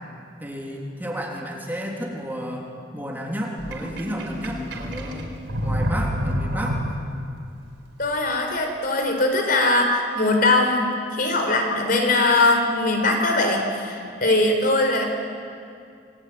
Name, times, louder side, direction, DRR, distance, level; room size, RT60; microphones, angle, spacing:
voice 1, 0.4-2.7 2.9-5.3 5.6-6.8, equal, 10° right, -1 dB, 3.2 m, -31 dB
Sink (filling or washing), 3.6-7.3, equal, 85° right, 4.1 m, -28 dB
voice 2, 8.0-15.0, left 2 dB, 50° left, 3 dB, 4.5 m, -21 dB
28.0 x 21.0 x 9.5 m, 2.4 s
head